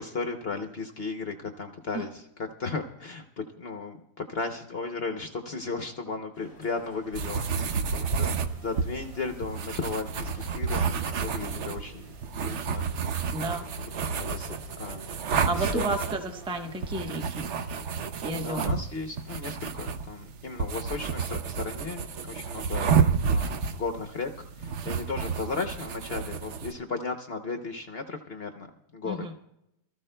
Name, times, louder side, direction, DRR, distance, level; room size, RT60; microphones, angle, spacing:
voice 1, 0.0-2.2 2.6-8.3 8.6-12.1 12.4-13.5 14.0-15.1 15.6-15.8 18.4-22.9 23.3-29.3, left 4 dB, 50° left, 4 dB, 0.7 m, -35 dB
sound 1, 6.3-17.9, equal, 45° right, 3.7 m, -51 dB
sound 2, 7.1-26.7, right 5 dB, 65° right, 0.7 m, -30 dB
voice 2, 13.3-13.7 15.5-17.4 18.2-18.7 29.0-29.3, right 2 dB, 5° right, 5 dB, 0.4 m, -32 dB
23.5 x 14.0 x 2.2 m, 0.83 s
omnidirectional pair, 2.0 m